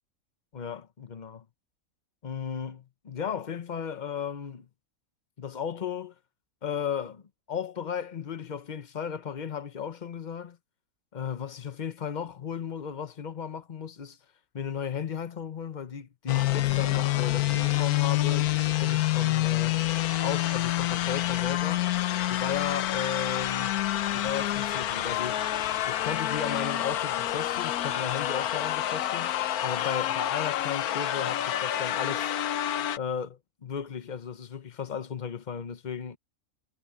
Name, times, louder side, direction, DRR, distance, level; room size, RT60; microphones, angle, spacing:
voice 1, 0.5-1.4 2.2-4.7 5.4-6.1 6.6-10.6 11.1-14.2 14.5-18.5 18.8-19.8 20.2-21.8 22.3-23.8 24.1-25.5 25.9-32.3 33.0-36.2, left 7 dB, 35° left, 0.9 m, -35 dB
sound 1, 16.3-33.0, left 14 dB, 85° left, 1.2 m, -27 dB
omnidirectional pair, 1.5 m